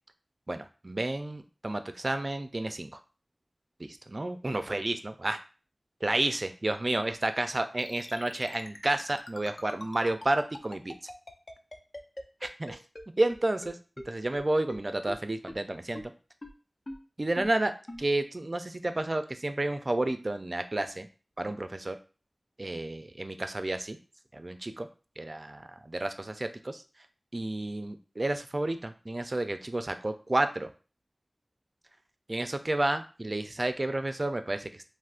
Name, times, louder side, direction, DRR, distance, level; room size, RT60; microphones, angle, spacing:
voice 1, 0.5-3.0 3.8-5.4 6.0-11.0 12.4-12.8 13.2-13.8 14.1-16.1 17.2-17.7 18.0-21.1 21.4-22.0 22.6-24.0 24.3-24.9 25.2-26.8 27.3-30.7 32.3-34.8, right 2 dB, 45° right, 9 dB, 0.4 m, -31 dB
sound 1, 7.8-13.0 13.3-13.4 13.6-13.7 14.0-14.1 14.3-14.4 14.7-14.8 15.1-15.2 15.5-15.6 16.0-16.1 16.4-16.5 16.9-17.0 17.4-17.5 17.9-18.0, left 1 dB, 50° left, 0.5 m, -41 dB
3.5 x 2.5 x 2.4 m, 0.35 s
wide cardioid pair, 55°, 0 cm